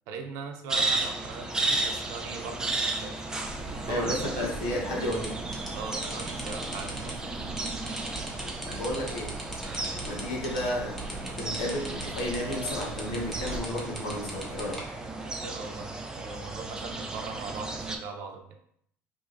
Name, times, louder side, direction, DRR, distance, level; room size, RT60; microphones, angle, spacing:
voice 1, 0.1-3.2 3.9-4.5 5.7-7.2 9.7-9.9 15.2-18.4, right 4 dB, 75° right, 3 dB, 0.7 m, -40 dB
sound 1, 0.7-18.0, right 2 dB, 10° right, 0.5 m, -34 dB
Water tap faucet / Drip, 3.4-13.6, right 3 dB, 25° right, 0.9 m, -42 dB
voice 2, 3.9-5.4 8.6-9.3 10.0-14.8, left 1 dB, 85° left, -2 dB, 1.2 m, -32 dB
sound 2, 5.1-14.8, equal, 5° left, 1.0 m, -40 dB
4.6 x 2.7 x 2.6 m, 0.67 s
cardioid pair, 120°, 6 cm